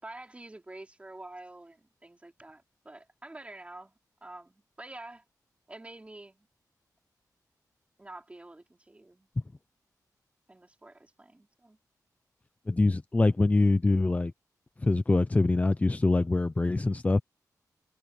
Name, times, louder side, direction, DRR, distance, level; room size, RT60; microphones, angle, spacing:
voice 1, 0.0-5.2 5.7-6.5 8.0-9.3 10.5-11.8, right 2 dB, 20° right, 4.8 m, -48 dB
voice 2, 12.7-14.3 14.8-17.2, left 2 dB, 20° left, 0.8 m, -24 dB
wide cardioid pair, 115°, 7 cm